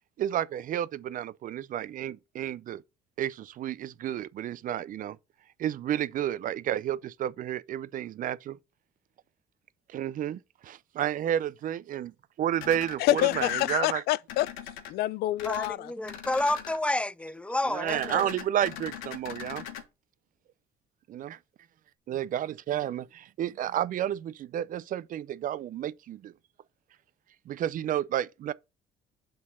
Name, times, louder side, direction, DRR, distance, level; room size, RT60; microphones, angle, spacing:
voice 1, 0.2-2.8 3.2-5.2 5.6-8.6 9.9-12.1 12.4-14.0 17.7-19.6 21.1-21.4 22.1-26.3 27.5-28.5, right 11 dB, 55° right, 0.5 m, -31 dB
sound 1, 12.6-13.7 14.3-14.9 15.4-15.7 16.0-16.8 17.9-19.8, left 9 dB, 90° left, 1.2 m, -41 dB
voice 2, 13.0-14.5 14.9-15.9, left 15 dB, 70° left, 0.4 m, -26 dB
voice 3, 15.4-18.2, left 2 dB, 5° left, 0.4 m, -30 dB
6.2 x 3.9 x 5.5 m
supercardioid pair, 75°, 17 cm